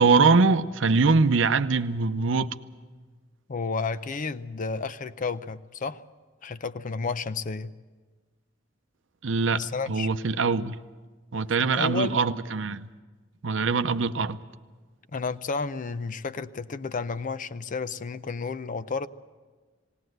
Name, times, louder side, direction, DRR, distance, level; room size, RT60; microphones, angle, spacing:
voice 1, 0.0-2.5 9.2-10.8 11.3-12.9 13.4-14.4, right 4 dB, 70° right, 0.7 m, -23 dB
voice 2, 3.5-6.0 6.4-7.7 9.5-10.1 11.6-12.2 15.1-19.1, left 4 dB, 45° left, 0.5 m, -31 dB
19.0 x 18.5 x 7.8 m
head